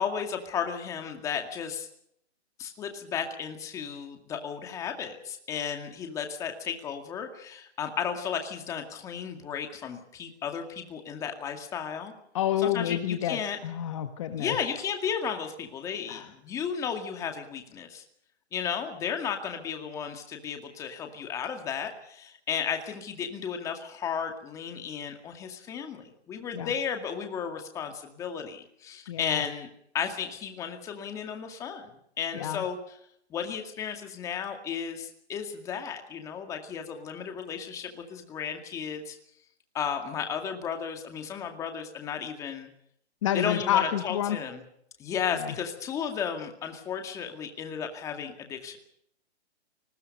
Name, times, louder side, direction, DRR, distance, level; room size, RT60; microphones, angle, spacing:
voice 1, 0.0-1.9 2.6-12.1 12.6-13.6 14.4-18.0 18.5-29.7 29.9-31.9 32.2-33.0 33.3-39.2 39.7-42.7 43.3-44.6 45.0-48.8, left 7 dB, 10° left, 5 dB, 2.1 m, -34 dB
voice 2, 12.3-14.5 16.1-16.3 26.5-26.7 29.1-29.4 32.3-32.6 43.2-44.4 45.4-45.5, left 11 dB, 30° left, 8 dB, 1.5 m, -29 dB
30.0 x 20.0 x 5.4 m, 0.70 s
hypercardioid pair, 170°, 34 cm